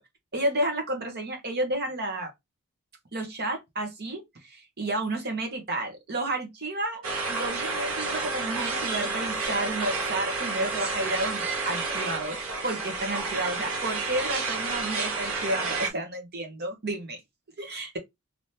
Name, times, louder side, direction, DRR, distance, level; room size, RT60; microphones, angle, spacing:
voice 1, 0.3-2.3 3.1-17.2 17.6-18.0, right 1 dB, 45° right, 1.2 m, -31 dB
sound 1, 7.0-15.9, right 3 dB, 70° right, 1.1 m, -30 dB
3.0 x 2.8 x 3.2 m
head